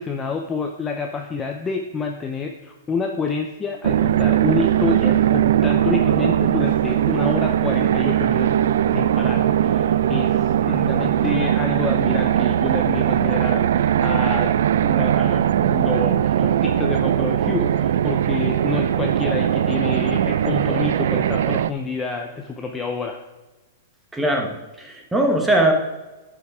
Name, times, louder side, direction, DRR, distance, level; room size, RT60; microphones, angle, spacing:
voice 1, 0.0-8.5 8.9-14.5 14.8-23.2, left 4 dB, 10° left, 2 dB, 0.6 m, -28 dB
sound 1, 3.8-21.7, right 10 dB, 70° right, 0.4 m, -20 dB
voice 2, 24.1-24.5 24.8-25.7, right 1 dB, 5° right, 2 dB, 1.2 m, -20 dB
10.5 x 5.7 x 4.8 m, 1.1 s
supercardioid pair, 165°, 0 cm